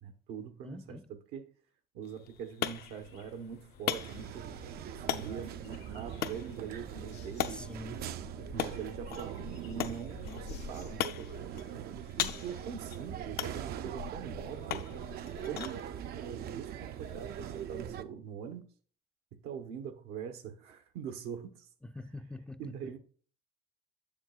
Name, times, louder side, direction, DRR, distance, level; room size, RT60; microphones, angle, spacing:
voice 1, 0.0-1.0 1.3-1.5 1.9-4.5 4.9-7.6 8.5-11.9 12.2-14.9 15.5-15.9 16.1-18.7 19.3-21.7 22.6-23.0, right 7 dB, 90° right, 1.0 m, -43 dB
voice 2, 0.6-1.1 7.5-8.0 21.8-23.0, left 1 dB, 5° left, 0.3 m, -45 dB
sound 1, 2.0-17.6, left 10 dB, 65° left, 0.5 m, -41 dB
sound 2, 2.6-18.0, left 7 dB, 85° left, 1.3 m, -52 dB
sound 3, 3.9-18.0, right 10 dB, 70° right, 0.5 m, -42 dB
7.3 x 7.2 x 2.3 m
cardioid pair, 110°, 17 cm